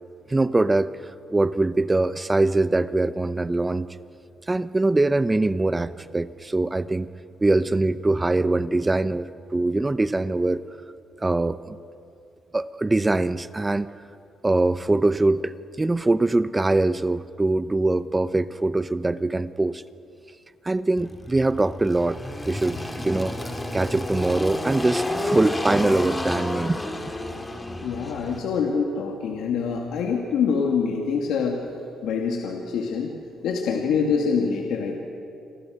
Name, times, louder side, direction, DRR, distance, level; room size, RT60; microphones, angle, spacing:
voice 1, 0.3-0.9 1.3-3.9 4.5-7.1 7.4-10.6 11.2-11.8 12.5-13.9 14.4-19.8 20.6-22.2 22.5-22.8 23.0-23.3 23.7-26.9, right 2 dB, 20° right, 14 dB, 0.8 m, -23 dB
Engine, 21.0-28.4, left 1 dB, 15° left, 2.6 m, -30 dB
voice 2, 27.8-31.6 32.0-33.1 33.4-35.0, left 5 dB, 80° left, 1 dB, 2.6 m, -25 dB
28.0 x 25.5 x 6.6 m, 2.5 s
cardioid pair, 90°, 0 cm